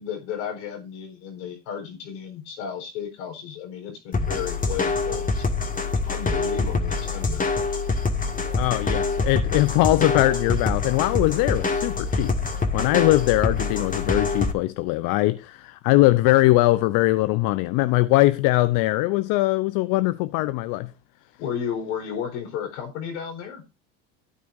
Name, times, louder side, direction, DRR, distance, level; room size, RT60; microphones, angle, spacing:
voice 1, 0.0-5.4 5.8-7.5 21.4-23.6, left 8 dB, 85° left, 4.1 m, -33 dB
sound 1, 4.1-14.5, left 3 dB, 25° left, 2.0 m, -25 dB
voice 2, 8.6-12.3 12.7-20.9, left 18 dB, 65° left, 0.7 m, -21 dB
12.5 x 9.4 x 2.6 m
supercardioid pair, 85°, 35 cm